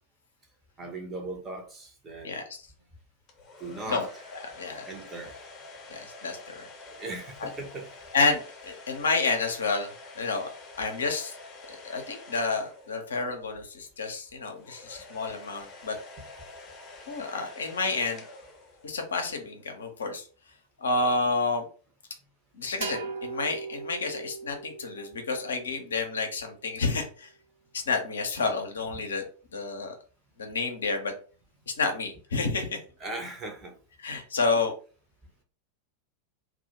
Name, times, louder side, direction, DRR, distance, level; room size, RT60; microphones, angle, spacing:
voice 1, 0.8-2.4 3.6-4.1 4.8-5.4 6.9-7.9 33.0-33.7, right 2 dB, 20° right, 2 dB, 0.7 m, -38 dB
voice 2, 2.2-2.6 3.9-4.1 4.3-4.9 5.9-6.7 7.4-7.5 8.1-10.5 10.8-11.4 11.7-16.0 17.1-18.2 18.8-20.3 20.8-21.7 22.5-27.3 27.7-29.3 29.5-29.9 30.4-31.1 31.7-32.8 34.0-34.7, left 3 dB, 70° left, 4 dB, 0.5 m, -30 dB
sound 1, 3.3-13.4 14.5-19.2, left 3 dB, 30° left, 0.6 m, -47 dB
sound 2, 22.8-26.4, right 5 dB, 50° right, 0.3 m, -39 dB
2.1 x 2.0 x 2.9 m, 0.39 s
figure-of-eight pair, 90°, 0 cm